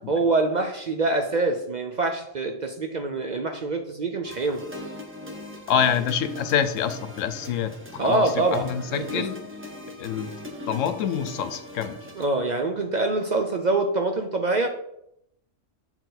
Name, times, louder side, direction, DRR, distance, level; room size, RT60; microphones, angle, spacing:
voice 1, 0.1-4.6 8.0-9.2 12.2-14.7, right 3 dB, 50° right, 5 dB, 0.5 m, -25 dB
sound 1, 4.2-12.2, left 1 dB, 10° right, 0.9 m, -39 dB
voice 2, 5.7-9.4 10.0-10.3 10.7-11.9, left 8 dB, 85° left, 11 dB, 1.0 m, -26 dB
7.8 x 4.5 x 3.9 m, 0.78 s
omnidirectional pair, 1.3 m